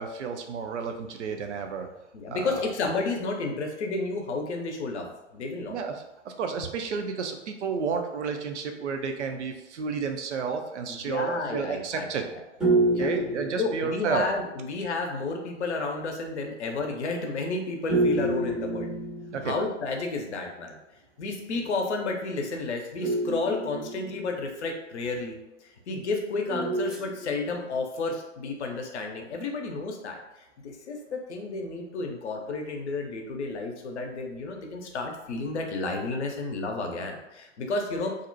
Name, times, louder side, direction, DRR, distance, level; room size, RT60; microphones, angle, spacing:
voice 1, 0.0-1.9 2.3-2.6 5.6-5.9 6.2-12.3 13.0-14.3 19.3-19.5, right 5 dB, 70° right, 5 dB, 0.5 m, -31 dB
voice 2, 2.1-5.8 10.9-12.1 12.3-12.4 12.9-13.1 13.6-18.9 19.4-20.8 21.2-30.2 30.6-38.2, left 3 dB, 65° left, 3 dB, 0.6 m, -31 dB
sound 1, 12.6-14.3 17.9-19.7 23.0-24.6 26.5-27.7, right 2 dB, ahead, 0.5 m, -28 dB
2.6 x 2.1 x 2.6 m, 0.91 s
figure-of-eight pair, 105°, 37 cm